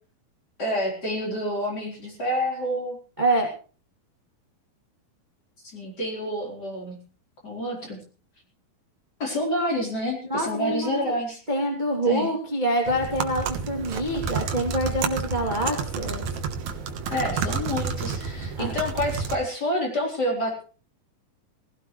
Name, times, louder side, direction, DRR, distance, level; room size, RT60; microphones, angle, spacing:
voice 1, 0.6-3.0 5.6-7.0 7.4-8.0 9.2-11.4 12.0-12.3 17.1-20.6, equal, 25° left, -1 dB, 4.5 m, -28 dB
voice 2, 3.2-3.5 10.3-11.1 11.5-16.3 18.6-18.7, right 1 dB, 15° right, 0 dB, 2.4 m, -26 dB
sound 1, 12.9-19.4, right 5 dB, 60° right, 2.3 m, -30 dB
20.0 x 16.0 x 3.3 m, 0.38 s
omnidirectional pair, 4.3 m